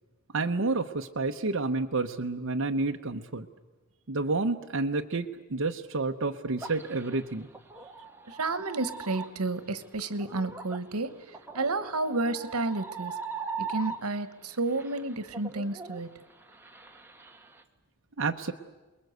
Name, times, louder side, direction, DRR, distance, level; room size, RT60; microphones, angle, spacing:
voice 1, 0.3-3.5 4.1-7.5 18.2-18.5, right 3 dB, 60° right, 3 dB, 0.9 m, -29 dB
sound 1, 6.6-14.4 14.7-17.6, right 5 dB, 10° right, 1.4 m, -41 dB
voice 2, 8.3-13.2 13.6-16.2, right 3 dB, 90° right, 13 dB, 1.3 m, -31 dB
28.5 x 21.0 x 8.0 m, 1.2 s
head